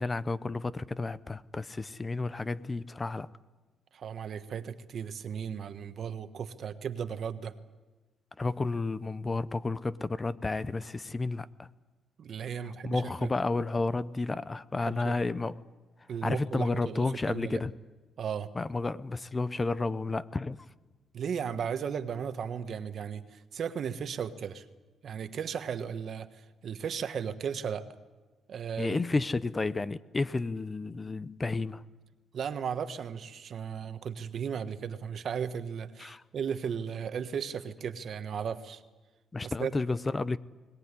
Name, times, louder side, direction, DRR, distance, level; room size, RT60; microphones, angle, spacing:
voice 1, 0.0-3.3 8.4-11.7 12.8-15.6 16.2-17.7 18.6-20.6 28.8-31.8 36.0-36.2 39.3-40.4, left 3 dB, 25° left, 16 dB, 0.6 m, -31 dB
voice 2, 3.9-7.5 12.2-13.3 14.8-15.2 16.1-17.6 18.2-18.5 21.1-24.6 25.0-27.9 28.5-29.2 32.3-38.8 39.4-39.7, right 7 dB, 60° right, 10 dB, 1.4 m, -36 dB
21.5 x 18.0 x 9.8 m, 1.3 s
cardioid pair, 90°, 0 cm